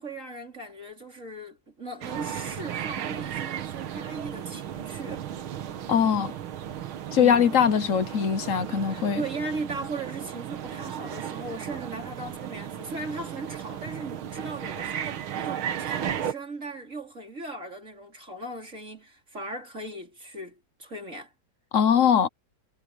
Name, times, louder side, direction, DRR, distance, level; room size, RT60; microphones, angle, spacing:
voice 1, 0.0-5.8 7.2-7.5 8.9-21.3, right 2 dB, 35° right, 3.9 m, -38 dB
sound 1, 2.0-16.3, right 9 dB, 85° right, 2.0 m, -35 dB
voice 2, 5.9-6.3 7.1-9.2 21.7-22.3, left 8 dB, 55° left, 0.9 m, -21 dB
omnidirectional pair, 2.2 m